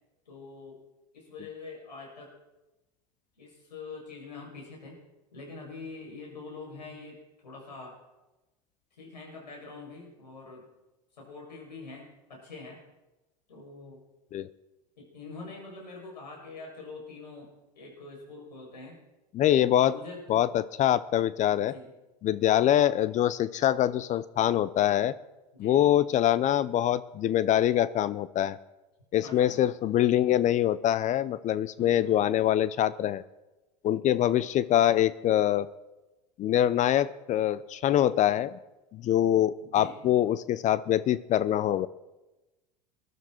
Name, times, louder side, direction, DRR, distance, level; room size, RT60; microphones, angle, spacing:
voice 1, 0.3-0.8 1.1-2.3 3.4-5.0 5.3-7.2 7.4-8.0 8.9-10.6 11.2-12.8 13.5-14.0 15.0-19.0 19.6-20.4 21.7-21.9 25.5-25.9 29.2-29.7 31.8-32.2 39.6-40.0, left 3 dB, 85° left, -2 dB, 7.3 m, -45 dB
voice 2, 19.3-20.0 20.3-21.7 22.2-25.2 25.6-28.6 29.1-33.2 33.8-35.7 36.4-38.6 38.9-41.9, left 11 dB, 35° left, 17 dB, 0.6 m, -24 dB
21.5 x 12.0 x 4.5 m, 1.0 s
hypercardioid pair, 90°, 21 cm